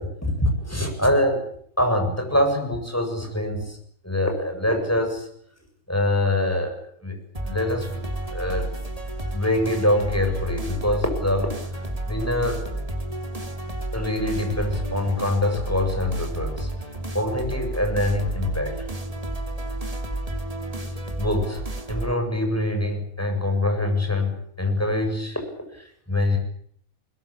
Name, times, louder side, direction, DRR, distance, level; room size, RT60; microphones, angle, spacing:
voice 1, 0.0-1.5 1.8-3.8 4.0-5.3 5.9-7.2 7.4-8.1 8.3-8.7 9.3-12.6 13.9-16.7 17.1-18.9 20.8-20.9 21.2-26.4, left 1 dB, 10° left, 4 dB, 7.6 m, -24 dB
sound 1, 7.3-22.1, right 1 dB, 25° right, 2.9 m, -31 dB
23.0 x 21.0 x 8.8 m, 0.63 s
omnidirectional pair, 1.5 m